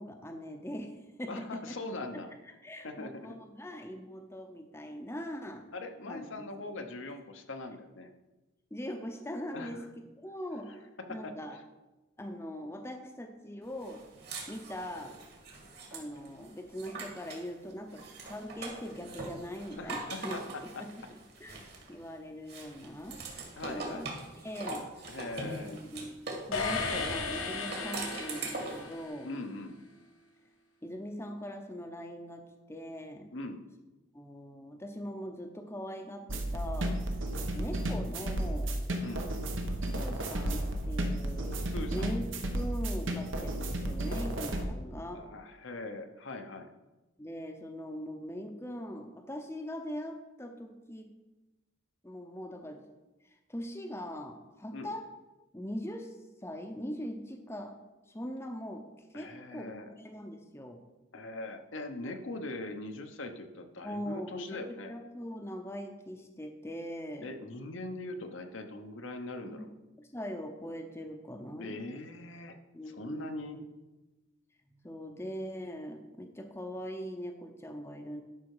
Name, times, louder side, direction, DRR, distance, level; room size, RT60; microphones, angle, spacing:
voice 1, 0.0-1.8 2.1-2.2 2.6-5.7 6.1-6.8 8.7-9.8 10.2-11.6 12.2-14.1 14.5-15.2 15.9-21.6 21.9-23.2 23.6-24.1 24.4-24.9 25.4-29.3 30.8-33.3 34.1-37.0 37.4-38.7 39.9-41.6 41.9-42.2 42.5-45.2 47.2-51.1 52.0-52.8 53.2-55.1 55.5-56.2 56.4-57.8 58.1-58.8 59.1-60.8 63.8-64.6 64.9-67.3 69.5-69.7 70.0-71.8 72.7-73.7 74.8-78.2, equal, 10° left, 4 dB, 0.7 m, -41 dB
voice 2, 1.3-2.3 2.8-3.4 5.7-8.1 9.5-9.9 11.0-11.3 19.8-20.4 20.7-20.8 23.6-24.1 25.1-25.8 29.2-29.8 33.3-33.7 39.0-39.3 41.7-42.1 45.1-46.7 54.7-54.9 59.1-59.9 61.1-64.9 67.2-69.7 71.6-72.6 72.9-73.6, left 2 dB, 70° left, 6 dB, 0.9 m, -41 dB
sound 1, 13.8-17.5 17.9-22.1 22.5-26.5 27.5-28.9, right 3 dB, 50° right, 2.1 m, -42 dB
sound 2, 26.5-29.4, left 4 dB, 90° left, 1.4 m, -35 dB
sound 3, 36.3-44.6, right 1 dB, 75° right, 1.1 m, -33 dB
11.0 x 5.6 x 4.8 m, 1.1 s
head